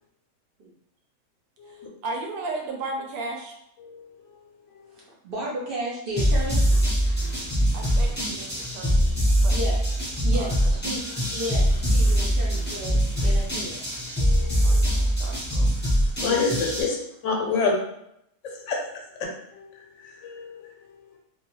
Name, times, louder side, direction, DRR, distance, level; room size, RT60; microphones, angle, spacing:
voice 1, 1.7-3.5 7.7-9.1 9.4-9.6 10.3-10.5 14.6-15.8, right 2 dB, 90° right, 1 dB, 1.0 m, -35 dB
voice 2, 4.9-6.6 9.5-13.8 16.2-16.4 17.5-17.6, right 1 dB, 60° right, -5 dB, 0.6 m, -34 dB
sound 1, 6.2-16.8, equal, 10° left, 0.5 m, -23 dB
voice 3, 14.2-14.8 16.2-16.5 16.8-17.0 17.2-17.7 18.4-18.8 19.2-19.6 20.0-20.7, left 4 dB, 70° left, -1 dB, 0.8 m, -28 dB
2.3 x 2.2 x 2.9 m, 0.77 s
omnidirectional pair, 1.4 m